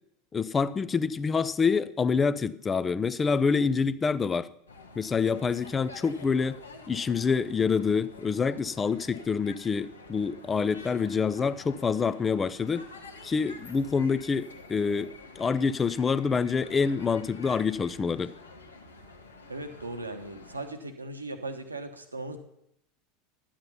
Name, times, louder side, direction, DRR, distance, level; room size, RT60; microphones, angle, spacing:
voice 1, 0.3-4.5 5.0-6.6 6.9-12.9 13.2-18.3, left 5 dB, 20° left, 16 dB, 0.5 m, -27 dB
sound 1, 4.7-20.7, left 3 dB, 80° left, 1.2 m, -49 dB
voice 2, 19.5-22.4, right 2 dB, 85° right, 7 dB, 1.1 m, -38 dB
12.0 x 8.8 x 5.6 m, 0.78 s
figure-of-eight pair, 80°, 0 cm